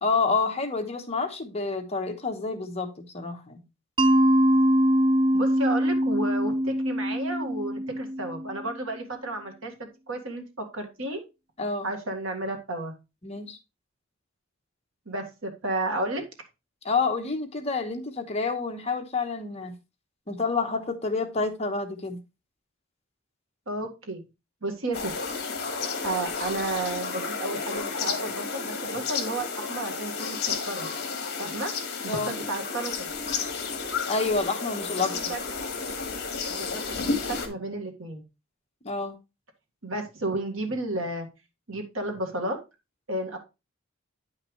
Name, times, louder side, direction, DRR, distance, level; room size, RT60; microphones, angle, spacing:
voice 1, 0.0-3.6 11.6-11.9 13.2-13.6 16.8-19.7 20.3-22.2 32.1-32.3 34.1-35.2 38.8-39.2, left 4 dB, 30° left, 1.1 m, -28 dB
Mallet percussion, 4.0-8.7, equal, 25° right, 0.4 m, -23 dB
voice 2, 5.3-9.7 10.1-11.2 11.8-12.9 15.1-16.2 23.7-24.2 24.6-25.1 26.0-30.9 31.4-31.7 32.0-33.1 35.0-35.7 36.5-37.0 37.3-38.2 39.8-41.3 41.7-42.6 43.1-43.4, right 2 dB, 75° right, 1.9 m, -32 dB
sound 1, 24.9-37.5, left 4 dB, 50° left, 1.7 m, -32 dB
9.7 x 5.9 x 3.2 m
head